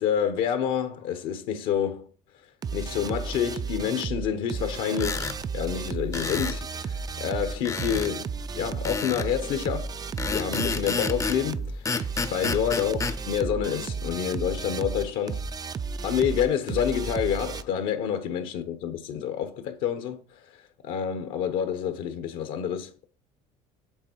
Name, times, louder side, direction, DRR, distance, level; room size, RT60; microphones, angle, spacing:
voice 1, 0.0-2.1 2.7-10.0 10.3-12.0 12.3-13.0 13.2-15.5 16.0-20.2 20.5-23.1, left 8 dB, 75° left, 1.0 m, -28 dB
sound 1, 2.6-17.6, right 5 dB, 25° right, 0.4 m, -33 dB
sound 2, 4.9-5.4 6.1-6.6 7.6-8.1 8.8-9.3 10.2-11.4 11.8-13.2, left 4 dB, 20° left, 0.6 m, -30 dB
7.9 x 3.5 x 4.5 m
supercardioid pair, 85°, 15 cm